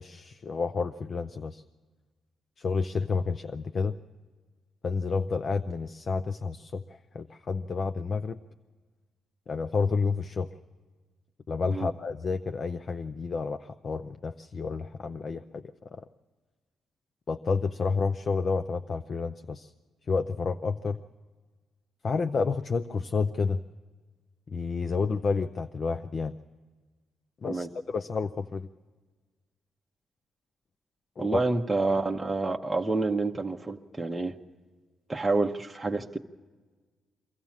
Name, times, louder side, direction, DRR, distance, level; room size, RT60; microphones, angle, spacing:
voice 1, 0.0-1.6 2.6-3.9 4.8-6.8 7.1-8.4 9.5-10.5 11.5-15.6 15.9-16.1 17.3-19.7 20.1-21.0 22.0-23.6 24.5-26.3 27.4-28.7 31.2-31.4, left 4 dB, 45° left, 9 dB, 0.5 m, -30 dB
voice 2, 31.2-34.3 35.1-36.2, right 3 dB, 10° right, 1 dB, 0.9 m, -28 dB
24.0 x 15.0 x 7.2 m, 1.4 s
cardioid pair, 105°, 0 cm